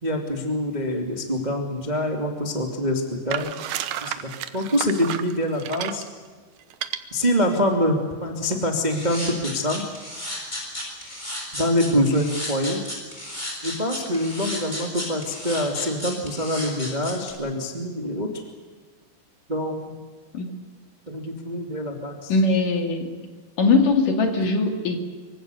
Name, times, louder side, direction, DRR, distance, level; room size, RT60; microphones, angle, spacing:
voice 1, 0.0-3.6 4.0-6.0 7.1-9.8 11.5-12.8 13.6-18.3 19.5-20.0 21.1-22.3 24.4-24.5, equal, 15° right, 2 dB, 1.7 m, -25 dB
sound 1, 3.3-6.1 6.7-7.0, right 11 dB, 70° right, 2.5 m, -31 dB
sound 2, 8.9-17.3, left 1 dB, 10° left, 6.4 m, -33 dB
voice 2, 22.3-23.1 23.6-25.0, left 3 dB, 55° left, 4 dB, 3.5 m, -20 dB
26.5 x 24.5 x 6.9 m, 1.5 s
omnidirectional pair, 5.0 m